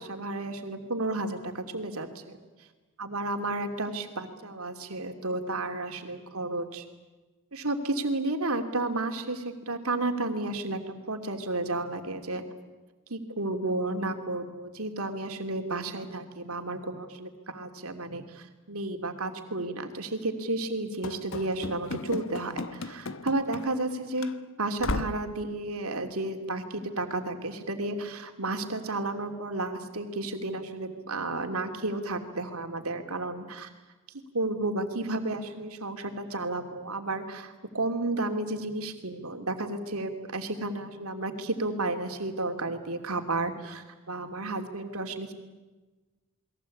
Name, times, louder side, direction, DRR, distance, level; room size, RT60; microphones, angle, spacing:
voice 1, 0.0-2.2 3.0-6.8 7.5-12.4 13.1-24.3 24.6-33.7 34.3-45.3, right 2 dB, 70° right, 6 dB, 3.0 m, -32 dB
Run / Slam, 21.0-23.9 24.2-24.3 24.8-25.3, left 2 dB, 60° left, 1.1 m, -35 dB
29.0 x 21.5 x 8.6 m, 1.2 s
head